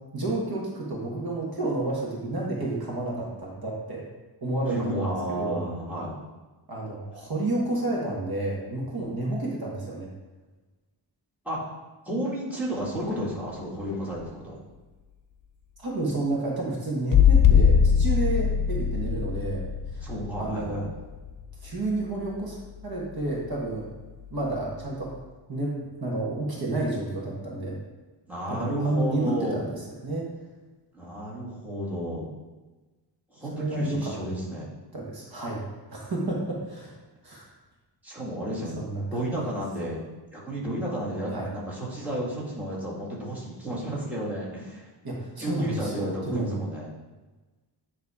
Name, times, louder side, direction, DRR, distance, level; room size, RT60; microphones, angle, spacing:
voice 1, 0.1-4.1 4.4-5.6 6.7-10.1 15.8-19.6 19.9-20.1 20.4-20.8 21.6-22.6 22.8-23.9 24.3-25.1 25.5-27.8 28.5-30.3 33.5-34.1 34.9-35.6 35.9-37.0 37.2-37.5 38.8-39.0 41.3-41.5 45.0-46.6, right 2 dB, 50° right, -3 dB, 1.6 m, -30 dB
voice 2, 4.6-6.1 11.4-11.6 12.1-14.6 20.0-20.9 28.3-29.6 30.9-32.3 33.3-34.7 38.0-38.8 39.1-40.0 40.3-44.9 45.4-46.9, right 1 dB, 5° right, -6 dB, 1.9 m, -32 dB
sound 1, 17.1-21.7 23.5-23.6, left 7 dB, 50° left, 0.5 m, -21 dB
9.6 x 3.3 x 4.8 m, 1.2 s
wide cardioid pair, 165°, 45 cm